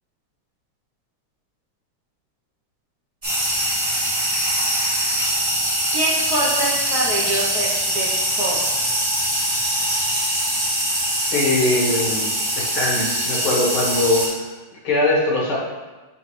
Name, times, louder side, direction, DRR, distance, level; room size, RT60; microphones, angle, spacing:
sound 1, 3.2-14.3, right 1 dB, 20° right, 1.4 m, -22 dB
voice 1, 5.9-8.1 8.4-8.6, right 2 dB, 55° right, -5 dB, 1.4 m, -24 dB
voice 2, 11.3-14.4 14.8-15.6, left 2 dB, 75° left, -4 dB, 2.2 m, -21 dB
6.6 x 4.7 x 3.2 m, 1.2 s
omnidirectional pair, 2.3 m